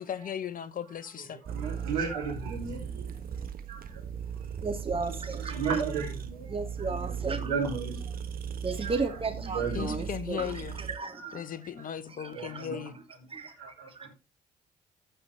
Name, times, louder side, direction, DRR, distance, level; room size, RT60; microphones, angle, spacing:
voice 1, 0.0-1.4 9.7-10.8 11.3-12.9, left 9 dB, 50° left, 1.1 m, -37 dB
voice 2, 1.3-3.0 3.3-4.1 4.3-4.5 5.4-6.5 7.3-8.2 8.8-8.9 9.5-10.0 10.4-10.5 11.2-11.3 11.7-13.0 13.6-14.1, right 5 dB, 80° right, 3.2 m, -35 dB
sound 1, 1.4-11.0, right 7 dB, 50° right, 1.3 m, -38 dB
voice 3, 4.6-5.8 6.5-7.5 8.6-11.7 12.1-12.8 13.3-14.1, right 4 dB, 30° right, 2.5 m, -35 dB
15.0 x 5.7 x 3.5 m
hypercardioid pair, 45°, 19 cm